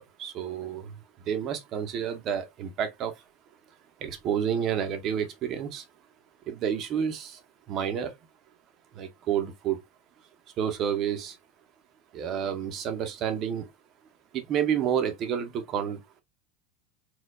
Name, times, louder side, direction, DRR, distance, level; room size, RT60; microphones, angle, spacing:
voice 1, 0.0-3.2 4.0-5.8 6.5-7.4 7.7-8.1 8.9-9.8 10.6-11.4 12.1-13.7 14.3-16.2, right 8 dB, 35° right, 0.7 m, -30 dB
4.3 x 2.2 x 2.2 m
supercardioid pair, 155°, 0 cm